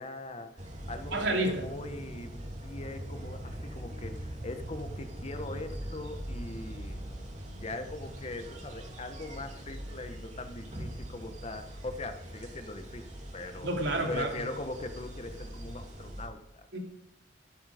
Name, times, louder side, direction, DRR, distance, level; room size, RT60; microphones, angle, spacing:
voice 1, 0.0-7.0 7.6-13.7 14.1-16.7, left 2 dB, 35° left, 8 dB, 1.2 m, -41 dB
sound 1, 0.6-16.3, equal, 40° right, 2.8 m, -42 dB
voice 2, 1.1-1.6 13.6-14.3 16.7-16.8, right 2 dB, 80° right, 1 dB, 3.3 m, -29 dB
13.0 x 12.0 x 5.1 m, 0.85 s
head